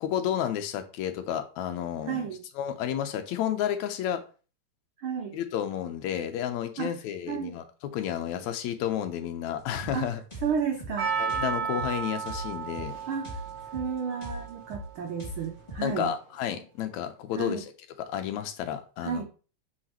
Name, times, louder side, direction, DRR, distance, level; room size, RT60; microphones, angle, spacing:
voice 1, 0.0-2.3 2.6-4.2 5.3-7.6 7.9-10.2 11.2-13.0 15.8-17.6 18.1-19.3, left 10 dB, 80° left, 8 dB, 2.0 m, -31 dB
voice 2, 2.1-2.4 5.0-5.4 6.8-7.0 7.3-7.6 9.9-10.1 10.4-11.2 13.1-13.4 13.7-16.1 17.3-17.6 19.0-19.2, right 7 dB, 85° right, 3 dB, 1.1 m, -32 dB
sound 1, 9.6-15.9, equal, 15° left, 1.4 m, -41 dB
Percussion, 11.0-15.3 16.0-16.1, right 6 dB, 60° right, 0.9 m, -33 dB
8.9 x 4.1 x 3.0 m, 0.36 s
omnidirectional pair, 3.3 m